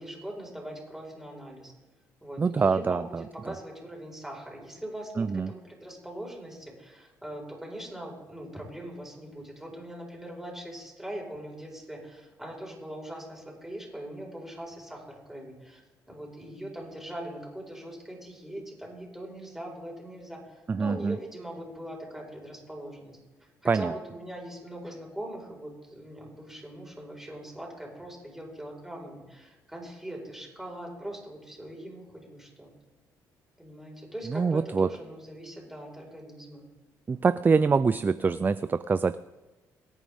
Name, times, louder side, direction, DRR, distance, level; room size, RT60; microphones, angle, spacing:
voice 1, 0.0-1.7 2.2-15.8 16.1-23.2 23.6-32.7 33.6-36.6, right 1 dB, 5° right, -2 dB, 4.9 m, -41 dB
voice 2, 2.4-3.2 5.2-5.5 20.7-21.2 23.7-23.9 34.3-34.9 37.1-39.2, right 5 dB, 25° right, 14 dB, 0.4 m, -25 dB
23.5 x 9.1 x 3.6 m, 1.1 s
cardioid pair, 85°, 7 cm